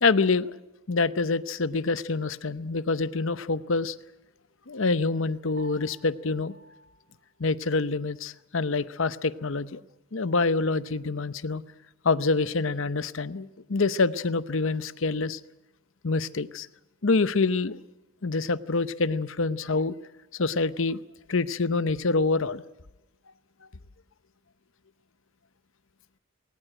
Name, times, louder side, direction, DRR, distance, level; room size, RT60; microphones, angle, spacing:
voice 1, 0.0-0.5 0.9-4.0 4.7-6.5 7.4-9.8 10.1-11.6 12.0-15.4 16.0-16.7 17.0-17.8 18.2-19.9 20.3-21.0 21.3-22.6, left 3 dB, 60° left, 15 dB, 0.8 m, -26 dB
Piano, 5.6-8.1, right 1 dB, 45° right, 6.2 m, -54 dB
20.5 x 19.0 x 8.9 m, 0.95 s
head